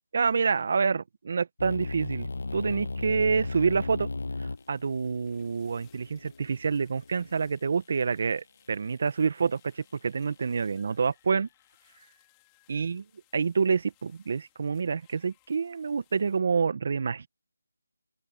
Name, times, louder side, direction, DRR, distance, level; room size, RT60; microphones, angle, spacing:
voice 1, 0.1-4.1 4.4-11.5 12.7-13.0 13.3-17.3, right 5 dB, 40° right, 1.5 m, -27 dB
sound 1, 1.6-7.5, left 3 dB, 60° left, 0.9 m, -36 dB
sound 2, 4.5-16.4, left 28 dB, 10° left, 5.2 m, -66 dB
open air
figure-of-eight pair, 170°, 0 cm